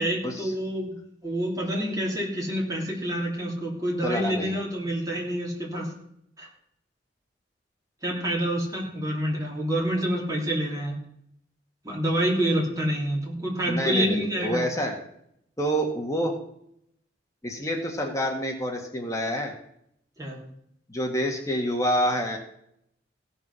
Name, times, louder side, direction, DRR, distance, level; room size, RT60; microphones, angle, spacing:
voice 1, 0.0-5.9 6.4-6.5 8.0-11.0 11.8-14.7 20.2-20.4, right 1 dB, 20° right, -2 dB, 3.4 m, -27 dB
voice 2, 4.0-4.6 13.7-15.0 15.6-16.3 17.4-19.5 20.9-22.4, equal, 20° left, 1 dB, 1.7 m, -27 dB
16.5 x 5.8 x 6.2 m, 0.72 s
head